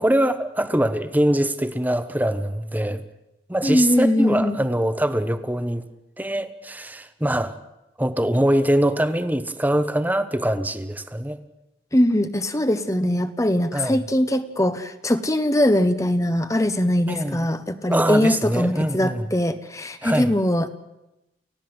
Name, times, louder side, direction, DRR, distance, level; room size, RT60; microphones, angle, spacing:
voice 1, 0.0-3.0 3.5-5.8 6.2-7.6 8.0-11.4 13.7-14.0 17.1-17.5 17.9-19.3 20.0-20.3, right 1 dB, 10° right, 1.1 m, -23 dB
voice 2, 3.6-4.6 11.9-20.7, left 1 dB, 20° left, 1.1 m, -21 dB
29.5 x 16.0 x 7.9 m
head